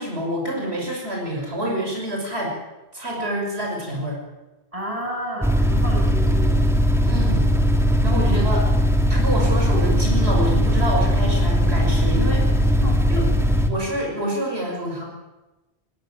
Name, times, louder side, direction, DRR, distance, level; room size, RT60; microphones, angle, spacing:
voice 1, 0.0-2.5 2.9-4.2 7.0-7.4 8.0-8.6 9.1-12.7 13.1-13.2 13.7-15.0, equal, 80° right, -1 dB, 6.4 m, -27 dB
voice 2, 4.7-6.5 8.2-8.5 12.8-13.0, right 1 dB, 35° right, 0 dB, 8.0 m, -31 dB
sound 1, 5.4-13.7, equal, ahead, 2.3 m, -19 dB
21.0 x 21.0 x 9.1 m, 1.1 s
omnidirectional pair, 1.1 m